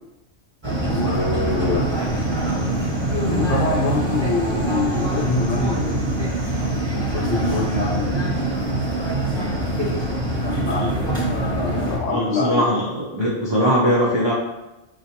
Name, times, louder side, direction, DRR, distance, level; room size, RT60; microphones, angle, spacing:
sound 1, 0.6-12.0, right 1 dB, 25° right, 0.8 m, -24 dB
voice 1, 0.9-1.9 3.3-6.3 6.9-8.6 9.7-9.8 10.4-12.7, left 3 dB, 70° left, -3 dB, 1.1 m, -25 dB
voice 2, 12.1-14.3, equal, 40° right, -6 dB, 0.4 m, -21 dB
5.1 x 2.8 x 2.8 m, 1.0 s
omnidirectional pair, 1.3 m